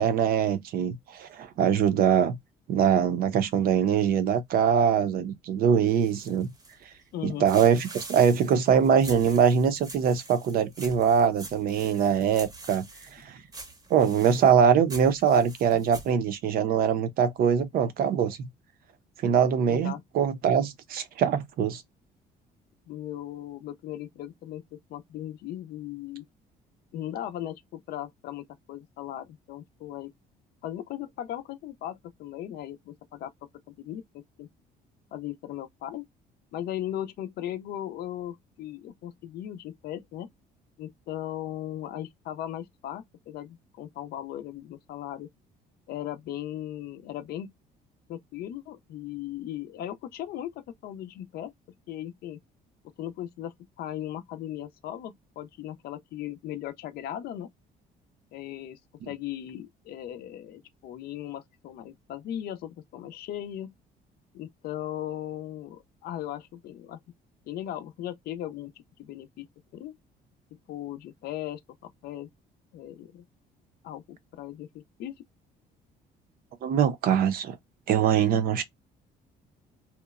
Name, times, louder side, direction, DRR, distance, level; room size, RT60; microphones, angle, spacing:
voice 1, 0.0-2.4 2.7-6.5 7.2-12.9 13.1-13.4 13.9-18.5 19.2-21.8 76.6-77.6 77.9-78.6, right 8 dB, 60° right, 0.5 m, -23 dB
sound 1, 5.9-7.0 7.4-13.3 13.5-16.1, right 2 dB, 20° right, 0.7 m, -45 dB
voice 2, 7.1-7.5 19.7-20.0 22.9-26.2 26.9-30.1 30.6-33.3 33.7-34.5 35.1-36.1 36.5-40.3 40.8-45.3 45.9-47.5 48.1-51.5 51.9-52.4 53.0-57.5 58.3-58.8 59.1-63.8 64.3-67.0 67.5-68.7 69.0-69.5 69.7-70.0 70.7-72.3 72.7-73.2 73.8-75.2, left 12 dB, 65° left, 0.4 m, -37 dB
2.8 x 2.0 x 2.3 m
cardioid pair, 110°, 17 cm